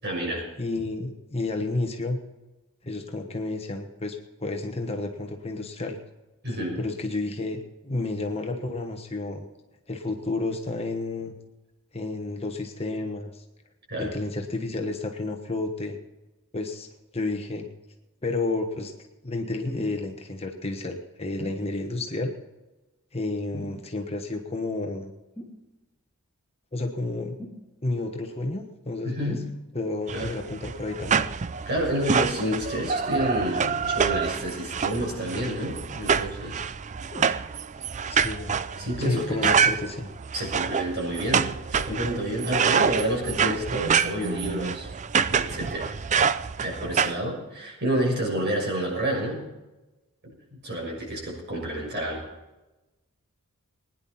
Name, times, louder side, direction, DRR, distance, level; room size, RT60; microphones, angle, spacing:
voice 1, 0.0-0.5 6.4-6.8 13.9-14.1 29.0-29.4 30.1-30.3 31.7-36.6 38.7-39.6 40.3-44.9 45.3-45.9 46.6-49.5 50.2-52.2, right 1 dB, 50° right, -2 dB, 6.5 m, -29 dB
voice 2, 0.6-2.2 2.8-6.0 6.8-9.4 9.9-11.3 11.9-13.4 14.0-16.0 16.5-16.9 17.1-17.7 18.2-18.9 19.2-22.3 23.1-25.1 26.7-27.4 27.8-29.4 29.7-31.3 37.8-38.6 39.0-40.1, left 2 dB, 25° left, 4 dB, 1.3 m, -31 dB
sound 1, 19.6-20.0 21.4-21.6 23.5-23.9 25.3-25.6 27.4-27.6 29.3-29.5 31.1-31.3 33.0-33.3 35.0-35.6 37.1-37.4 38.2-38.3, left 1 dB, 10° left, 2.6 m, -40 dB
sound 2, 30.1-47.1, right 6 dB, 30° right, 0.4 m, -26 dB
21.0 x 10.5 x 4.2 m, 1.1 s
head